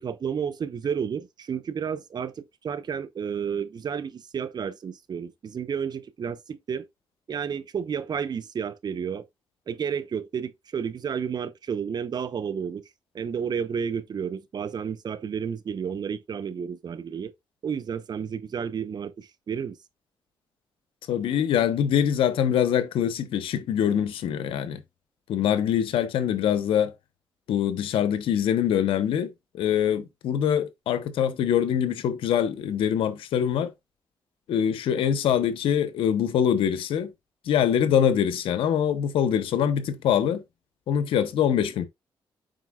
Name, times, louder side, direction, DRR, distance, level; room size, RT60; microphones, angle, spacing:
voice 1, 0.0-6.9 7.3-9.2 9.7-12.8 13.1-17.3 17.6-19.8, right 7 dB, 50° right, 0.8 m, -31 dB
voice 2, 21.1-24.8 25.3-26.9 27.5-33.7 34.5-37.1 37.5-40.4 40.9-41.9, left 9 dB, 85° left, 0.9 m, -24 dB
7.7 x 5.2 x 2.3 m
cardioid pair, 80°, 9 cm